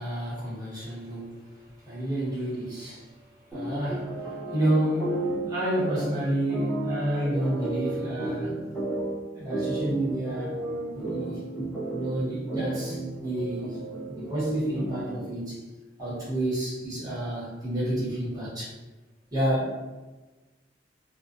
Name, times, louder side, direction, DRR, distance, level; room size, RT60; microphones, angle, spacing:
voice 1, 0.0-1.5 1.8-3.2 3.4-8.6 9.3-10.6 10.9-11.4 11.9-13.8 14.1-15.6 16.0-18.8 19.3-19.8, right 1 dB, 20° right, -9 dB, 1.1 m, -30 dB
sound 1, 3.5-15.3, right 1 dB, ahead, 0.6 m, -33 dB
2.4 x 2.3 x 2.4 m, 1.2 s
head